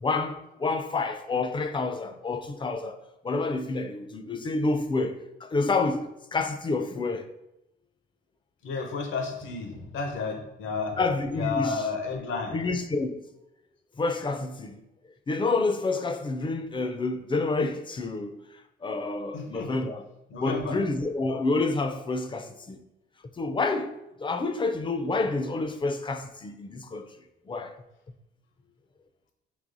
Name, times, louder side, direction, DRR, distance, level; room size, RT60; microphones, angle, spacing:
voice 1, 0.0-3.0 3.2-7.3 11.0-11.8 12.5-13.3 14.0-14.8 15.3-18.4 18.8-20.0 20.4-22.8 23.4-27.1 27.5-27.7, left 3 dB, 25° left, 0.4 m, -28 dB
voice 2, 8.6-11.0 11.3-12.6 19.3-19.9 20.3-20.8, left 4 dB, 75° left, 0.8 m, -32 dB
4.7 x 3.2 x 2.6 m
cardioid pair, 90°, 20 cm